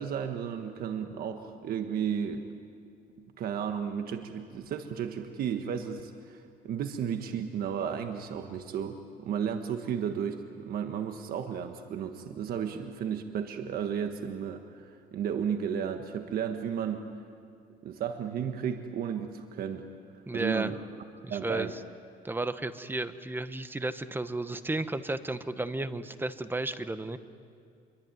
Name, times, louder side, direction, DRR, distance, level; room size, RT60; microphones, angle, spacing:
voice 1, 0.0-2.4 3.4-17.0 17.8-19.9 20.3-20.8 21.3-21.7, right 8 dB, 60° right, 6 dB, 1.6 m, -33 dB
voice 2, 20.3-20.7 21.2-21.8 22.2-27.2, right 2 dB, 10° right, 11 dB, 1.2 m, -33 dB
27.0 x 23.5 x 9.3 m, 2.3 s
cardioid pair, 110°, 17 cm